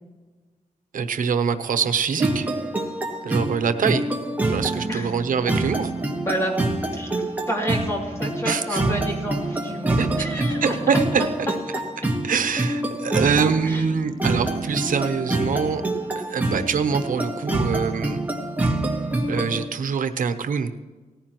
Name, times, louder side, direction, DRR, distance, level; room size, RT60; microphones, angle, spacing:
voice 1, 0.9-2.5 3.2-4.1 4.5-5.9 8.4-8.8 10.0-11.2 12.2-15.8 16.1-18.2 19.3-20.7, right 6 dB, 85° right, 9 dB, 0.9 m, -24 dB
sound 1, 2.2-19.6, right 2 dB, 10° right, 1.6 m, -26 dB
voice 2, 4.8-5.1 6.2-6.6 6.9-11.0 13.6-13.8, equal, 20° left, -1 dB, 2.8 m, -29 dB
18.5 x 15.0 x 3.1 m, 1.3 s
wide cardioid pair, 165°, 14 cm